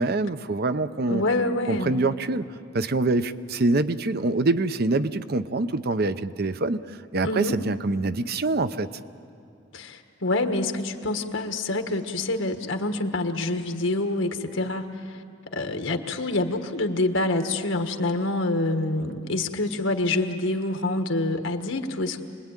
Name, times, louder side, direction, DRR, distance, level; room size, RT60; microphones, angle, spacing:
voice 1, 0.0-1.2 1.7-8.9, right 2 dB, 55° right, 12 dB, 0.7 m, -25 dB
voice 2, 1.1-2.0 7.2-7.6 9.7-15.2 15.5-22.2, left 2 dB, 90° left, 6 dB, 1.5 m, -26 dB
26.5 x 20.5 x 9.1 m, 2.6 s
head